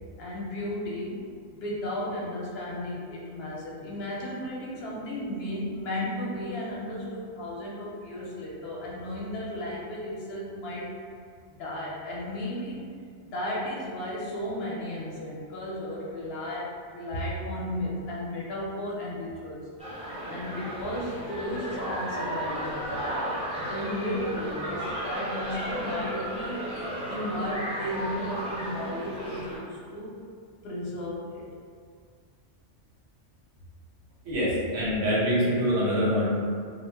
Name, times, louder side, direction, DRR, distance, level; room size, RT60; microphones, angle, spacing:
voice 1, 0.2-11.0 11.6-12.8 13.3-19.6 20.3-23.2 23.6-26.8 27.1-30.2 30.6-31.5, left 1 dB, 65° left, -4 dB, 0.7 m, -34 dB
sound 1, 19.8-29.6, equal, 10° right, 0.4 m, -34 dB
voice 2, 34.2-36.3, equal, 90° right, -7 dB, 1.2 m, -25 dB
2.3 x 2.2 x 3.3 m, 2.1 s
omnidirectional pair, 1.2 m